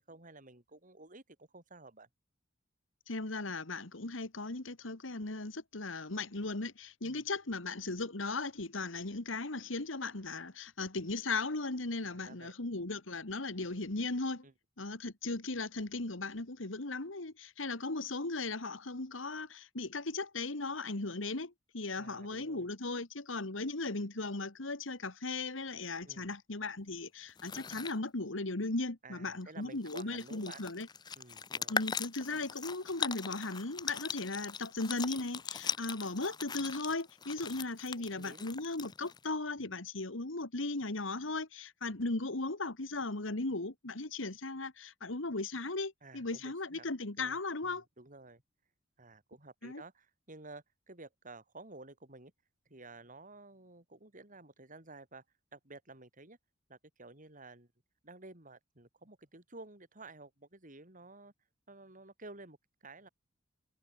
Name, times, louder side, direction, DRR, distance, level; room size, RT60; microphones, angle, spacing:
voice 1, 0.0-2.1 7.0-7.2 12.1-12.5 14.4-14.5 22.0-22.7 26.0-26.3 29.0-30.6 31.2-31.8 38.0-38.5 46.0-46.9 47.2-48.4 49.0-52.3 52.7-55.2 55.5-56.4 56.7-57.7 58.0-61.3 61.7-63.1, right 2 dB, 45° right, 5.6 m, -53 dB
voice 2, 3.1-14.5 14.8-30.9 31.7-47.8 49.6-49.8, left 3 dB, 90° left, 2.1 m, -37 dB
sound 1, 27.3-28.0 29.4-29.5 29.7-39.3, left 6 dB, 20° left, 0.4 m, -40 dB
head